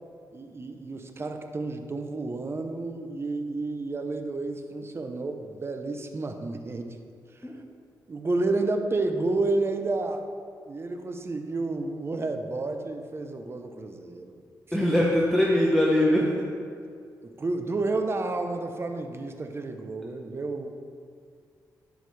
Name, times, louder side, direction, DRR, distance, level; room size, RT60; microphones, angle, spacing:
voice 1, 0.3-7.0 7.3-7.4 8.1-10.2 10.7-14.3 14.7-14.8 17.4-20.7, right 2 dB, 35° right, 6 dB, 0.8 m, -30 dB
voice 2, 14.7-16.3, left 1 dB, 5° left, -4 dB, 1.0 m, -22 dB
11.5 x 5.1 x 3.4 m, 2.2 s
cardioid pair, 75°, 7 cm